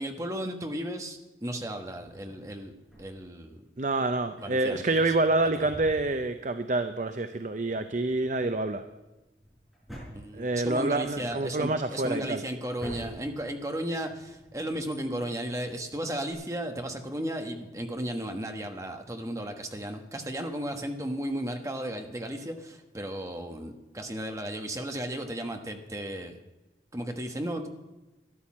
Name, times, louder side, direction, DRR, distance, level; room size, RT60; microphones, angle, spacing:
voice 1, 0.0-2.7 3.0-3.6 4.4-5.1 5.6-5.7 10.1-26.4 26.9-27.7, right 1 dB, 15° right, 5 dB, 1.2 m, -35 dB
Drawer open or close, 1.9-3.4 4.2-6.7 7.0-7.1 7.6-16.3, equal, ahead, 5.9 m, -49 dB
voice 2, 3.8-8.8 10.3-12.4, right 2 dB, 45° right, 9 dB, 0.6 m, -27 dB
13.0 x 11.5 x 7.3 m, 1.1 s
head